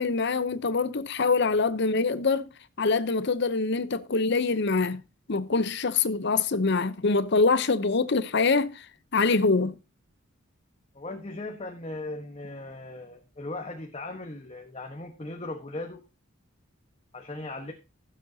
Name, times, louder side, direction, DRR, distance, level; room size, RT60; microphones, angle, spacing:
voice 1, 0.0-2.5 2.8-5.0 5.3-8.9 9.1-9.8, left 4 dB, 55° left, 0.7 m, -24 dB
voice 2, 10.9-16.0 17.1-17.7, left 2 dB, 30° left, 1.2 m, -38 dB
16.0 x 7.5 x 2.8 m
head